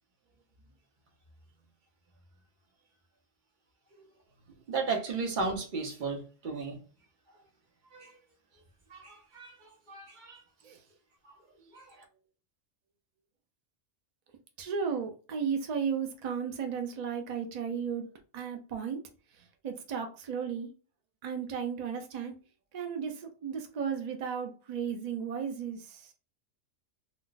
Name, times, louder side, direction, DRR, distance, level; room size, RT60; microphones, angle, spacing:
voice 1, 4.7-6.8 7.9-8.1 8.9-9.5 9.9-10.4 11.7-11.9, right 4 dB, 45° right, 0.8 m, -34 dB
voice 2, 14.6-18.1 18.3-19.0 19.3-20.7 21.2-22.3 22.7-26.1, right 7 dB, 70° right, 0.3 m, -34 dB
2.4 x 2.2 x 3.8 m
omnidirectional pair, 1.3 m